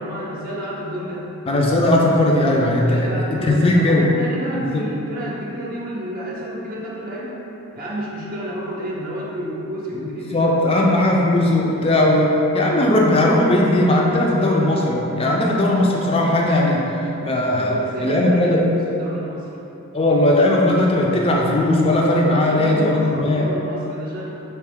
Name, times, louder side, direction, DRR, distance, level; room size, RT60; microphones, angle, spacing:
voice 1, 0.0-1.3 2.8-7.4 7.7-10.9 17.5-19.5 22.3-24.3, equal, 40° right, -5 dB, 0.6 m, -30 dB
voice 2, 1.5-4.1 4.5-4.8 10.0-16.9 17.2-17.7 18.0-18.7 19.9-23.5, left 1 dB, 25° left, -2 dB, 0.4 m, -18 dB
4.5 x 2.9 x 3.5 m, 3.0 s
head